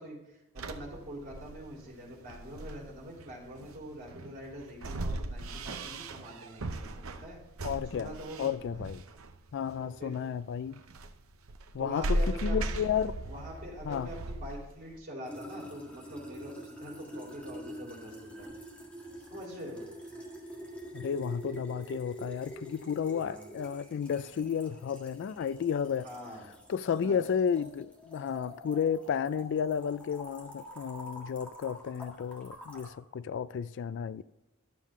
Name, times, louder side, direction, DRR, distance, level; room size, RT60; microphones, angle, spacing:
voice 1, 0.0-7.4 7.9-8.8 9.8-10.1 11.8-12.8 13.2-18.5 19.3-19.8 23.1-23.5 26.0-26.5 26.9-27.2, equal, 40° right, 3.5 m, -44 dB
sound 1, 0.6-15.0, right 1 dB, 70° right, 0.7 m, -38 dB
voice 2, 7.6-9.0 9.5-10.8 11.7-13.1 13.8-14.1 20.9-26.1 26.7-34.2, left 7 dB, 60° left, 0.3 m, -32 dB
sound 2, 15.2-32.9, equal, 5° left, 1.7 m, -46 dB
12.0 x 7.3 x 3.6 m
head